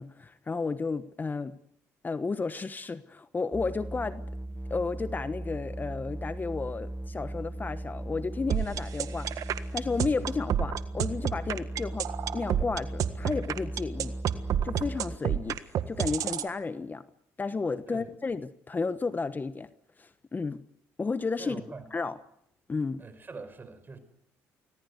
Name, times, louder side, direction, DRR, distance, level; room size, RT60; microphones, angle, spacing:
voice 1, 0.0-1.6 2.0-4.2 4.7-14.1 14.6-17.0 17.4-19.7 20.0-20.6 21.0-21.6 21.9-22.2 22.7-23.0, left 4 dB, 25° left, 12 dB, 1.1 m, -32 dB
sound 1, 3.5-15.2, right 1 dB, 5° right, 0.8 m, -38 dB
sound 2, 8.5-16.5, right 10 dB, 65° right, 1.6 m, -29 dB
voice 2, 21.4-21.9 23.0-24.0, right 4 dB, 30° right, 12 dB, 5.3 m, -43 dB
25.5 x 19.0 x 8.2 m, 0.75 s
supercardioid pair, 70°, 7 cm